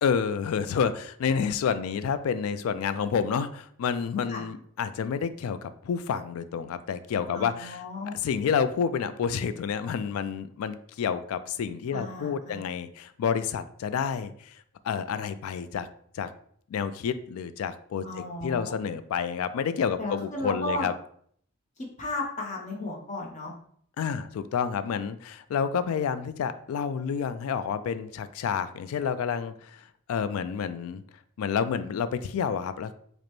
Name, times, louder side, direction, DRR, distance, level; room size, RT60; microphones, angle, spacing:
voice 1, 0.0-7.8 8.0-14.6 14.8-15.9 16.1-16.3 16.7-20.9 24.0-31.0 31.4-32.9, left 7 dB, 90° left, 13 dB, 0.3 m, -29 dB
voice 2, 7.3-8.2 11.9-12.6 18.0-18.8 20.0-20.9 21.8-23.5, left 2 dB, 35° left, -1 dB, 0.8 m, -34 dB
5.0 x 2.1 x 3.0 m, 0.63 s
head